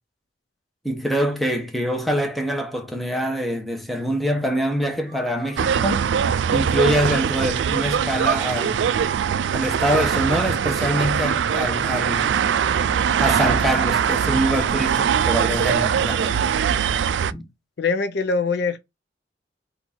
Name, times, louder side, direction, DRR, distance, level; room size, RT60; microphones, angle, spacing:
voice 1, 0.8-6.1 6.5-8.9 9.5-12.4 13.2-16.4 17.3-17.5, equal, ahead, 0.9 m, -24 dB
sound 1, 5.1-11.0, right 4 dB, 45° right, 1.4 m, -45 dB
sound 2, 5.6-17.3, right 8 dB, 70° right, 0.3 m, -22 dB
voice 2, 17.8-18.8, left 4 dB, 65° left, 0.5 m, -22 dB
4.4 x 2.6 x 4.2 m
head